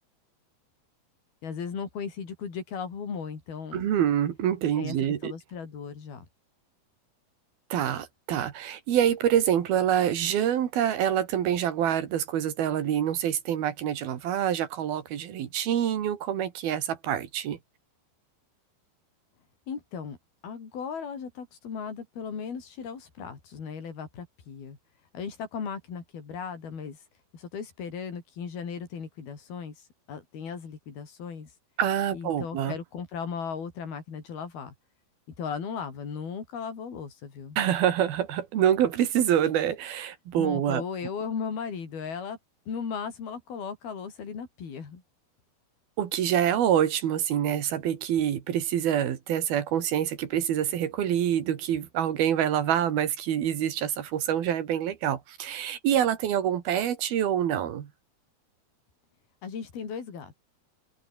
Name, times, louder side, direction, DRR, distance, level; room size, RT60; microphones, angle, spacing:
voice 1, 1.4-3.9 4.8-6.3 19.7-20.2 20.4-24.8 25.1-27.0 27.3-31.5 32.1-34.7 35.4-37.6 40.4-42.4 42.7-45.0 59.4-60.3, left 6 dB, 70° left, 6.6 m, -36 dB
voice 2, 3.7-5.3 7.7-17.6 31.8-32.8 37.6-40.8 46.0-57.9, right 10 dB, 70° right, 3.9 m, -26 dB
open air
omnidirectional pair, 4.5 m